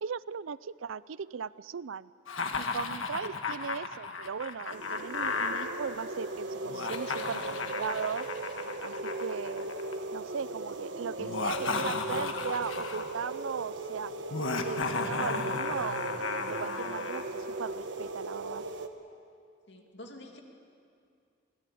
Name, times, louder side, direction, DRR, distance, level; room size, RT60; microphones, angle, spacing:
voice 1, 0.0-2.1 2.6-8.3 8.8-9.7 10.1-14.1 14.6-16.1 16.5-18.6, right 6 dB, 85° right, 18 dB, 0.5 m, -38 dB
Laughter, 2.3-5.7 6.6-9.9 11.2-13.2 14.3-17.2, left 4 dB, 85° left, 1.6 m, -34 dB
sound 1, 4.7-18.9, right 2 dB, 70° right, 1.4 m, -38 dB
voice 2, 19.7-20.4, left 1 dB, 60° left, 2 dB, 2.7 m, -47 dB
24.0 x 18.5 x 8.6 m, 2.4 s
head